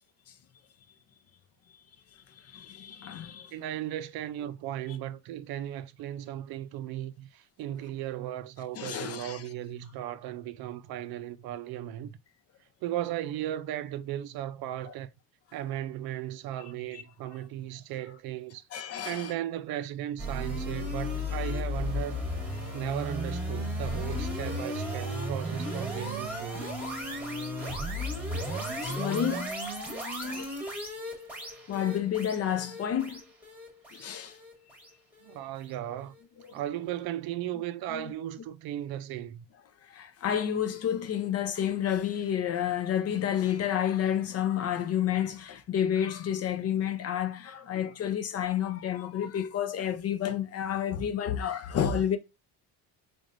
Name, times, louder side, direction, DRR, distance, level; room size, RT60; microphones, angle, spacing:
voice 1, 2.3-3.5 8.7-9.4 14.8-14.9 18.7-19.3 28.8-29.5 30.2-30.7 31.7-33.2 33.9-34.4 36.4-36.5 37.9-38.1 39.8-52.2, left 9 dB, 40° left, 0.5 m, -30 dB
voice 2, 3.5-12.2 12.8-15.1 15.5-22.2 22.7-26.8 35.2-36.2 36.5-39.5, right 12 dB, 65° right, 0.5 m, -36 dB
sound 1, 20.2-35.4, equal, 5° right, 1.1 m, -34 dB
4.0 x 3.4 x 2.5 m
cardioid pair, 145°, 39 cm